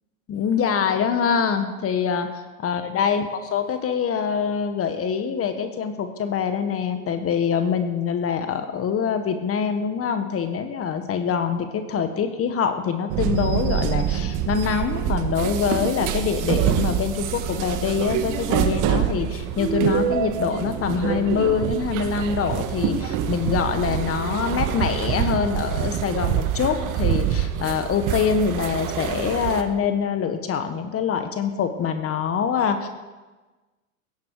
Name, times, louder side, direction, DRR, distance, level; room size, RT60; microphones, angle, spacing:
voice 1, 0.3-32.9, left 7 dB, 30° left, 7 dB, 1.7 m, -24 dB
sound 1, 13.1-29.6, right 9 dB, 45° right, 1.8 m, -25 dB
17.0 x 14.5 x 5.0 m, 1.2 s
hypercardioid pair, 100°, 42 cm